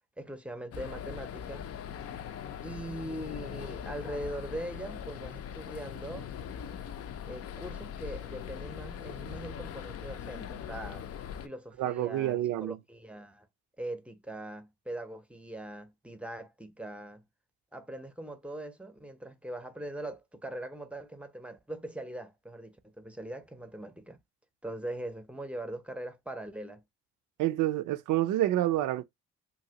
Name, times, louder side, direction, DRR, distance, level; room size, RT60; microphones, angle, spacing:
voice 1, 0.2-1.7 2.6-6.3 7.3-11.1 11.4-13.5 13.8-17.2 17.7-24.2 24.6-26.8, right 1 dB, 5° right, 0.6 m, -41 dB
sound 1, 0.7-11.5, left 8 dB, 50° left, 0.5 m, -41 dB
voice 2, 11.8-12.8 27.4-29.0, right 14 dB, 85° right, 0.5 m, -28 dB
2.9 x 2.7 x 2.8 m
cardioid pair, 90°, 30 cm